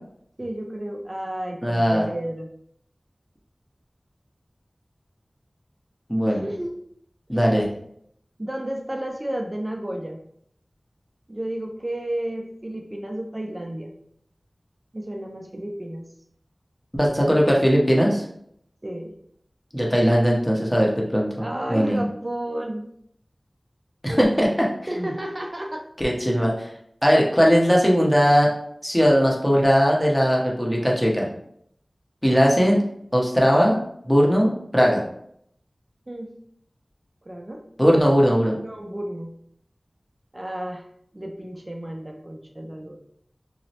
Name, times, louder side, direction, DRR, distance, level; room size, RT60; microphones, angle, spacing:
voice 1, 0.4-2.5 6.2-6.7 7.3-7.7 8.4-10.2 11.3-13.9 14.9-16.1 18.8-19.1 21.4-22.9 24.9-25.8 36.1-36.3 37.3-38.0 38.6-39.3 40.3-40.8 41.1-43.0, right 1 dB, 35° right, 2 dB, 0.4 m, -32 dB
voice 2, 1.6-2.0 6.1-6.4 7.3-7.7 16.9-18.2 19.7-21.3 21.7-22.0 24.0-24.7 25.0-25.1 26.0-26.7 27.0-28.5 28.8-31.3 32.2-32.8 33.1-33.8 34.0-35.0 37.8-38.6, equal, 10° left, -2 dB, 0.7 m, -19 dB
3.0 x 2.0 x 2.7 m, 0.70 s
wide cardioid pair, 40°, 0 cm